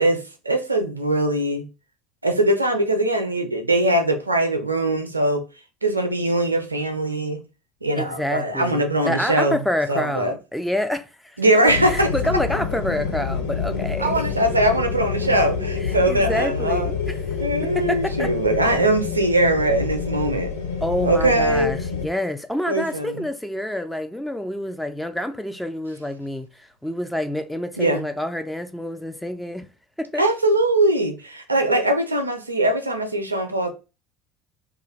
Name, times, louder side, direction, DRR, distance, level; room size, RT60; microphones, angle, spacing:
voice 1, 0.0-1.7 2.2-5.4 5.8-7.4 7.8-9.6 9.9-10.4 11.4-12.1 14.0-16.9 17.4-20.5 21.0-21.7 22.7-23.2 27.8-28.1 30.2-33.7, right 1 dB, 85° right, 0.4 m, -21 dB
voice 2, 8.0-14.1 15.9-17.2 17.6-18.3 20.8-29.6 30.0-30.2, left 1 dB, 5° left, 0.4 m, -27 dB
sound 1, 11.7-22.0, left 5 dB, 75° left, 0.6 m, -27 dB
2.4 x 2.3 x 3.0 m
figure-of-eight pair, 65°, 0 cm